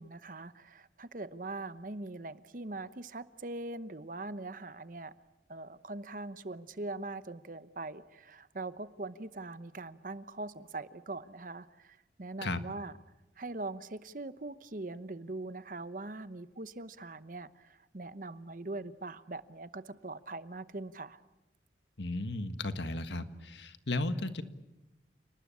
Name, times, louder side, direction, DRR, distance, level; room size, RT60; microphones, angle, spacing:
voice 1, 0.0-5.1 5.5-12.9 13.4-21.2, right 2 dB, 50° right, 14 dB, 0.9 m, -42 dB
voice 2, 22.0-24.4, left 2 dB, 85° left, 10 dB, 1.6 m, -35 dB
29.0 x 20.0 x 8.6 m, 1.0 s
head